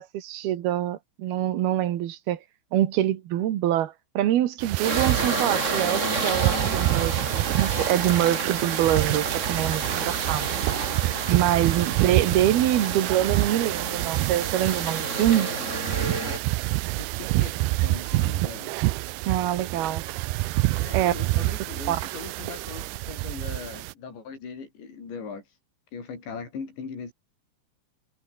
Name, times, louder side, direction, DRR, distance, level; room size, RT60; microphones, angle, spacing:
voice 1, 0.0-2.4 2.7-10.6 11.3-15.5 19.3-20.0 20.9-21.1 21.9-22.0, right 12 dB, 65° right, 3.3 m, -25 dB
sound 1, 4.6-23.9, right 20 dB, 90° right, 2.3 m, -27 dB
sound 2, 4.8-16.4, right 2 dB, 15° right, 5.3 m, -31 dB
voice 2, 17.0-18.7 20.8-25.6 25.9-27.1, left 5 dB, 75° left, 8.8 m, -39 dB
omnidirectional pair, 5.2 m